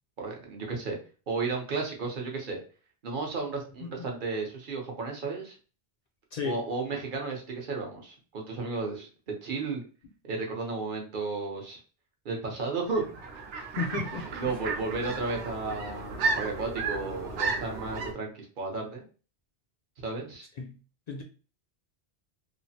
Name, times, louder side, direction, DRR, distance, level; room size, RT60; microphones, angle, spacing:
voice 1, 0.2-1.0 1.3-2.6 3.0-5.6 6.4-9.8 10.2-11.8 12.2-13.1 14.4-19.0 20.0-20.5, right 3 dB, 50° right, 0.9 m, -33 dB
voice 2, 6.3-6.6 13.7-14.3 20.6-20.8 21.1-21.2, left 5 dB, 55° left, 0.5 m, -34 dB
sound 1, 12.9-18.1, right 4 dB, 90° right, 0.9 m, -33 dB
3.1 x 2.0 x 2.7 m
omnidirectional pair, 1.1 m